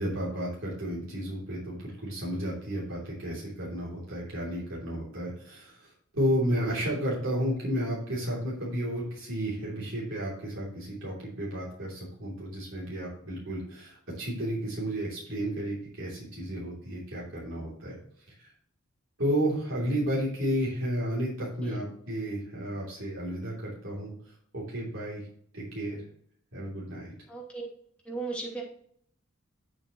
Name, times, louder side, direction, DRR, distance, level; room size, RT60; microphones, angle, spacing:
voice 1, 0.0-17.9 18.2-18.5 19.2-25.3 25.5-26.0 26.5-27.1, equal, 70° right, -6 dB, 3.1 m, -32 dB
voice 2, 27.3-27.7 28.0-28.6, right 3 dB, 5° left, -4 dB, 2.7 m, -36 dB
8.6 x 7.2 x 3.1 m, 0.63 s
head